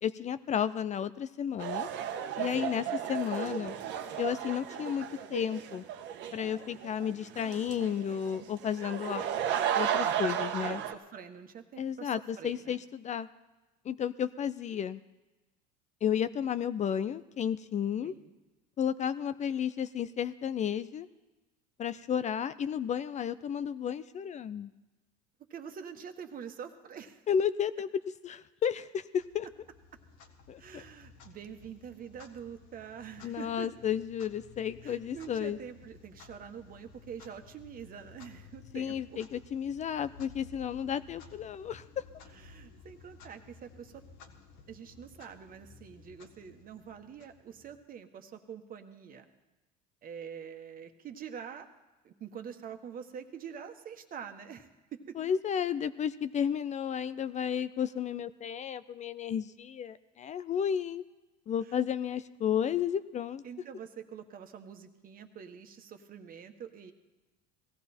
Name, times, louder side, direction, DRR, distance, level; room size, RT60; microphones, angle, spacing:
voice 1, 0.0-1.9 2.4-3.7 4.2-5.8 6.3-9.3 9.7-10.8 11.8-13.3 13.8-15.0 16.0-18.1 18.8-21.1 21.8-24.7 27.3-27.9 28.2-29.5 30.5-30.8 33.2-35.6 38.7-42.0 55.2-61.0 61.5-63.4, left 8 dB, 35° left, 13 dB, 0.5 m, -32 dB
sound 1, 1.6-10.9, right 9 dB, 60° right, 1.2 m, -34 dB
voice 2, 2.6-2.9 10.9-12.8 18.0-18.3 25.5-27.2 30.6-33.7 34.8-39.2 42.3-44.0 44.7-49.3 50.0-51.7 52.0-55.2 61.6-61.8 63.4-66.9, right 7 dB, 40° right, 7 dB, 1.4 m, -46 dB
Clock, 29.2-47.9, left 5 dB, 65° left, 1.6 m, -55 dB
18.5 x 14.5 x 4.4 m, 1.1 s
supercardioid pair, 100°, 21 cm